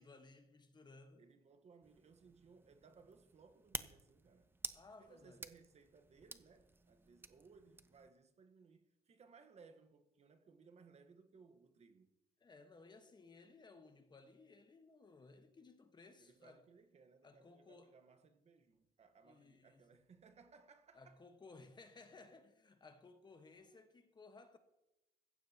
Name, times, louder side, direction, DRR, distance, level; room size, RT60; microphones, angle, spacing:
voice 1, 0.0-1.3 4.7-5.5 12.4-16.6 17.2-18.0 19.2-20.0 20.9-24.6, left 3 dB, 25° left, 1.3 m, -60 dB
voice 2, 1.2-4.6 5.0-12.1 16.2-21.2 23.5-23.8, right 5 dB, 40° right, 1.3 m, -64 dB
sound 1, 1.8-8.1, right 3 dB, 15° right, 0.6 m, -52 dB
16.0 x 15.0 x 2.9 m
cardioid pair, 110°, 17 cm